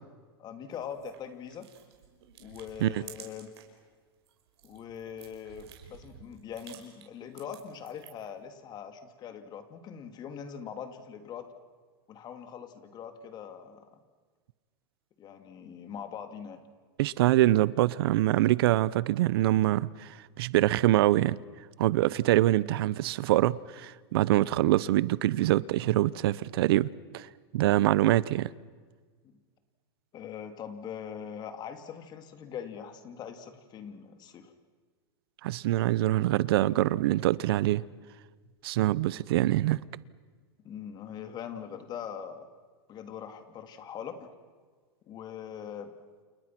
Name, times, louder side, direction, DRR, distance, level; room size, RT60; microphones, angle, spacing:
voice 1, 0.4-1.7 2.4-3.5 4.6-11.5 12.1-14.0 15.2-16.6 29.2-29.3 30.1-34.5 40.6-42.5 42.9-44.3 45.1-45.9, left 8 dB, 30° left, 2.7 m, -42 dB
sound 1, 0.7-3.8 4.1-8.3, right 9 dB, 85° right, 5.5 m, -53 dB
voice 2, 17.0-21.4 21.8-26.9 27.1-27.3 27.5-28.5 35.4-37.8 38.6-39.8, right 15 dB, 70° right, 0.8 m, -24 dB
29.5 x 29.0 x 6.1 m
supercardioid pair, 135°, 13 cm